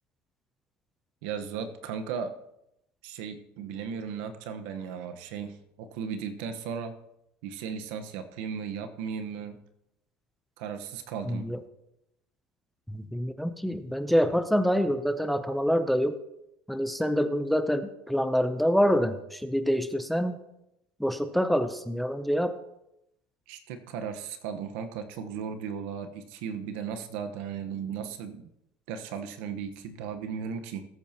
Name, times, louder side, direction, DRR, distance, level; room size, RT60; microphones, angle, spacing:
voice 1, 1.2-2.3 3.0-6.9 7.4-9.6 10.6-11.5 23.5-28.4 28.9-30.9, right 7 dB, 85° right, 7 dB, 1.1 m, -36 dB
voice 2, 11.3-11.6 12.9-16.2 16.7-20.4 21.0-22.6, equal, ahead, 9 dB, 0.6 m, -26 dB
20.0 x 8.8 x 2.9 m, 0.82 s
cardioid pair, 140°, 6 cm